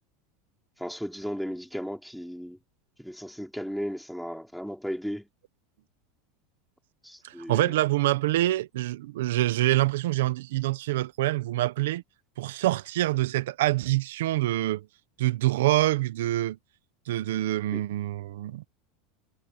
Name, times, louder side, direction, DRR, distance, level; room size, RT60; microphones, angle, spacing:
voice 1, 0.8-2.6 3.0-5.3 7.0-7.7 17.7-17.8, equal, ahead, 4.3 m, -35 dB
voice 2, 7.2-12.0 12.4-14.8 15.2-16.6 17.1-18.7, right 16 dB, 90° right, 0.8 m, -26 dB
supercardioid pair, 160°, 0 cm